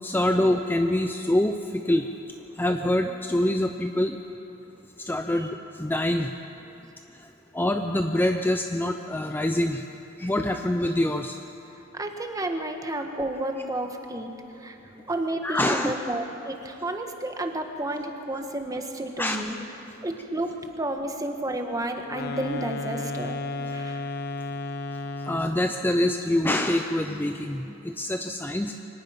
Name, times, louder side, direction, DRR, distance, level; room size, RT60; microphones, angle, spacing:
voice 1, 0.0-2.1 2.6-4.2 5.0-6.3 7.5-9.8 10.2-11.4 15.4-15.9 19.2-19.5 25.2-28.8, left 1 dB, 10° left, 5 dB, 0.5 m, -25 dB
voice 2, 11.9-14.3 14.6-14.8 15.1-19.6 20.0-23.4 23.7-24.0, right 1 dB, 20° right, 4 dB, 1.4 m, -31 dB
sound 1, 22.0-25.7, left 2 dB, 55° left, 1.0 m, -33 dB
24.0 x 18.5 x 5.8 m, 3.0 s
head